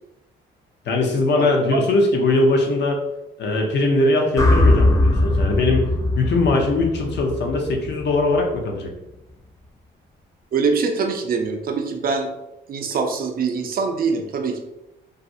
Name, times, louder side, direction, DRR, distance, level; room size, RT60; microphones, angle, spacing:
voice 1, 0.9-3.0 3.4-8.9, left 2 dB, 60° left, 2 dB, 0.6 m, -20 dB
voice 2, 1.4-1.8 10.5-12.3 12.7-14.6, right 5 dB, 45° right, 5 dB, 0.4 m, -23 dB
sound 1, 4.4-8.6, left 1 dB, 15° left, 0.3 m, -20 dB
2.4 x 2.0 x 2.5 m, 0.93 s
cardioid pair, 90°, 20 cm